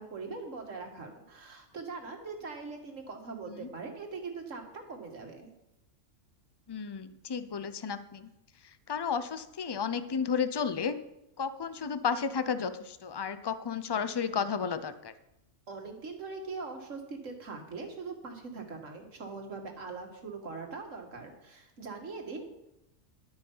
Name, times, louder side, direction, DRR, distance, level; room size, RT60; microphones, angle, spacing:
voice 1, 0.0-5.5 15.7-22.4, right 4 dB, 70° right, 3 dB, 2.2 m, -41 dB
voice 2, 6.7-8.3 8.6-11.0 11.4-15.1, left 6 dB, 30° left, 12 dB, 0.5 m, -33 dB
12.0 x 9.6 x 5.6 m, 0.88 s
omnidirectional pair, 1.3 m